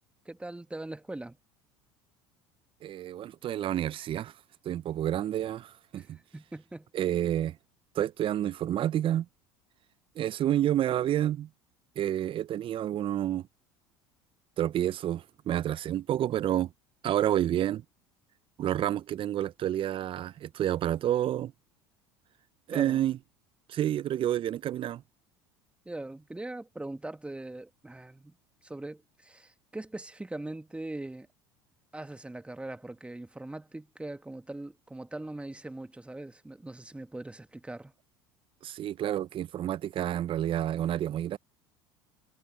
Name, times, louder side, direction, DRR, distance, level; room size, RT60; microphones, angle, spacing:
voice 1, 0.3-1.4 5.9-6.9 22.7-23.0 25.9-28.3 28.6-31.3 31.9-37.9, right 2 dB, 10° right, 1.8 m, -41 dB
voice 2, 2.8-4.3 4.6-6.2 6.9-7.6 7.9-9.3 10.2-11.5 12.0-13.5 14.6-16.7 17.0-17.8 18.6-21.5 22.7-23.2 23.7-25.0 38.6-41.4, right 11 dB, 40° right, 0.6 m, -29 dB
hypercardioid pair, 75°, 13 cm